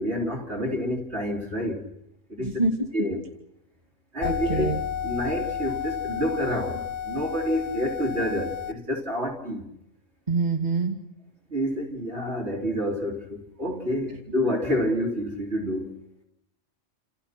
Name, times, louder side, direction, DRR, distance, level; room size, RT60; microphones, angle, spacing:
voice 1, 0.0-1.9 2.3-2.6 2.9-3.2 4.1-4.7 5.0-9.6 11.5-15.9, equal, 60° right, 4.0 m, -28 dB
voice 2, 2.4-2.9 4.2-4.8 10.3-11.0 14.1-14.2, right 3 dB, 35° right, 2.6 m, -26 dB
sound 1, 4.2-8.7, left 8 dB, 40° left, 1.2 m, -32 dB
29.0 x 28.5 x 6.0 m
omnidirectional pair, 1.3 m